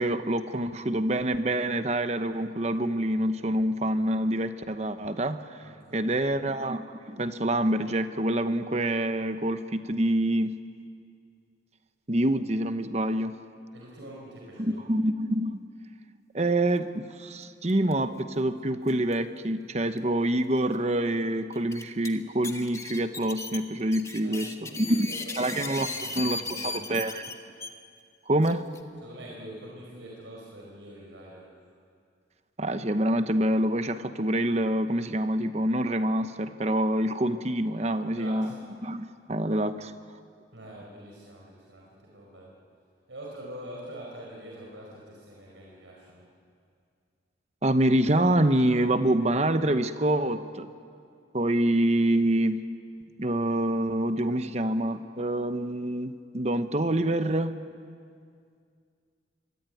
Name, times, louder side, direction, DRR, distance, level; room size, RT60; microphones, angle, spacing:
voice 1, 0.0-5.4 5.9-10.6 12.1-13.4 14.7-15.6 16.3-25.1 25.4-25.9 26.1-27.3 28.3-28.7 32.6-38.5 38.8-39.9 47.6-50.7 51.3-52.6 53.2-57.6, right 1 dB, 35° right, 10 dB, 0.9 m, -26 dB
voice 2, 5.6-6.2 13.7-14.8 24.2-25.6 25.9-26.9 29.0-31.5 38.2-38.5 40.5-41.9 42.1-42.5 43.1-46.2, right 1 dB, 80° right, -3 dB, 5.1 m, -44 dB
sound 1, 17.7-17.9 18.2-18.3 18.9-19.1 20.0-20.1 20.6-20.7 21.5-22.1 22.4-27.7 28.4-28.8, left 3 dB, 15° left, 1.2 m, -36 dB
26.0 x 23.0 x 9.3 m, 2.2 s
head